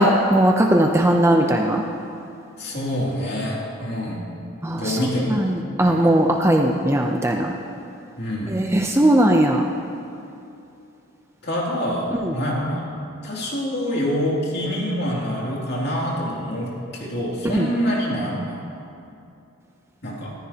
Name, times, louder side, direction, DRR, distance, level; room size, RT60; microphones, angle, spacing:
voice 1, 0.0-1.8 4.6-7.5 8.5-9.7 17.5-17.7, right 1 dB, 10° right, 2 dB, 0.5 m, -18 dB
voice 2, 2.6-4.2 4.7-5.4 5.8-6.1 8.2-8.6 11.4-12.9 13.2-18.6 20.0-20.3, equal, 50° left, -4 dB, 2.7 m, -26 dB
19.5 x 14.5 x 2.9 m, 2.6 s
head